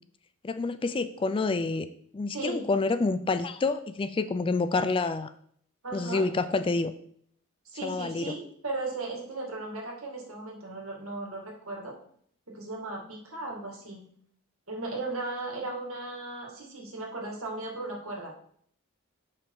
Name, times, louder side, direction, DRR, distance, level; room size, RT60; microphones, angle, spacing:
voice 1, 0.4-1.9 2.1-5.3 5.9-6.9 7.8-8.3, left 3 dB, 25° left, 12 dB, 0.3 m, -28 dB
voice 2, 2.3-2.6 5.8-6.2 7.7-11.9 12.5-14.0 14.7-18.3, right 2 dB, 65° right, 0 dB, 2.2 m, -36 dB
6.9 x 5.7 x 4.8 m, 0.63 s
head